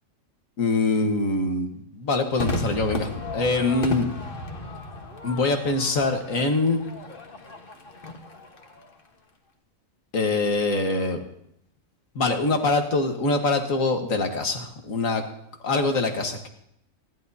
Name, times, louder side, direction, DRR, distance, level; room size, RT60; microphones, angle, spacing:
voice 1, 0.6-4.1 5.2-6.8 10.1-11.2 12.2-15.2 15.6-16.5, left 3 dB, 75° left, 4 dB, 1.9 m, -24 dB
Crowd / Fireworks, 2.4-8.9, left 2 dB, 45° left, 1.5 m, -34 dB
27.0 x 11.5 x 2.8 m, 0.75 s
omnidirectional pair, 1.4 m